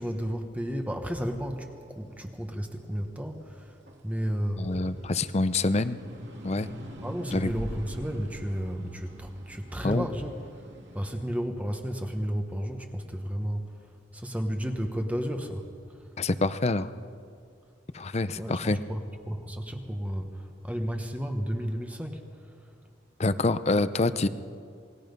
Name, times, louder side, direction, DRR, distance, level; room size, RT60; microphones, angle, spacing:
voice 1, 0.0-3.8 4.0-5.0 7.0-10.4 10.9-13.8 14.1-15.7 15.9-16.0 18.3-22.3, equal, 10° right, 4 dB, 1.2 m, -33 dB
sound 1, 1.7-4.2 4.6-11.2, equal, 70° right, 3.0 m, -44 dB
voice 2, 4.6-6.0 6.4-6.7 7.3-7.5 9.8-10.1 16.2-16.9 17.9-18.8 23.2-24.3, left 2 dB, 35° left, 13 dB, 0.6 m, -26 dB
28.0 x 19.5 x 5.3 m, 2.3 s
head